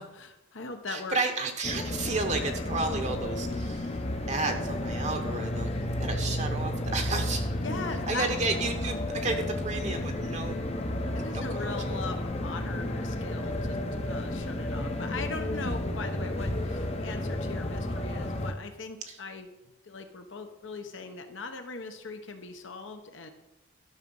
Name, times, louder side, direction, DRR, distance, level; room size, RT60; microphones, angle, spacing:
voice 1, 0.0-1.2 7.6-8.3 11.1-19.5 19.8-23.3, left 3 dB, 65° left, 6 dB, 1.1 m, -40 dB
voice 2, 0.9-4.0 4.3-5.7 6.0-7.5 8.1-10.6 11.3-11.7 19.1-19.2, right 3 dB, 35° right, 5 dB, 1.0 m, -32 dB
sound 1, 1.6-18.5, left 1 dB, 30° left, 0.8 m, -32 dB
12.5 x 6.2 x 5.5 m, 0.94 s
head